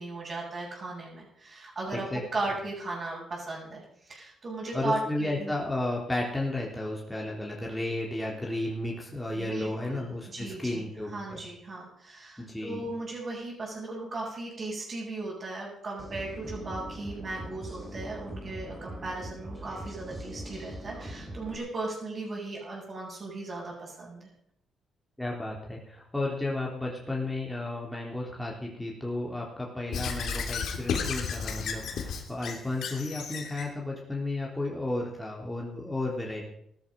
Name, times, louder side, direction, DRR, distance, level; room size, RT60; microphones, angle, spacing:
voice 1, 0.0-2.1 2.3-5.6 9.4-24.3, right 2 dB, 40° right, -6 dB, 7.1 m, -37 dB
voice 2, 1.9-2.2 4.7-11.4 12.4-12.8 25.2-36.5, left 2 dB, 5° left, -3 dB, 3.5 m, -33 dB
sound 1, 16.0-21.6, right 1 dB, 20° right, 4.1 m, -41 dB
Squeak / Writing, 29.9-33.7, left 6 dB, 70° left, 3.0 m, -33 dB
16.5 x 13.0 x 5.3 m, 0.72 s
cardioid pair, 90°, 0 cm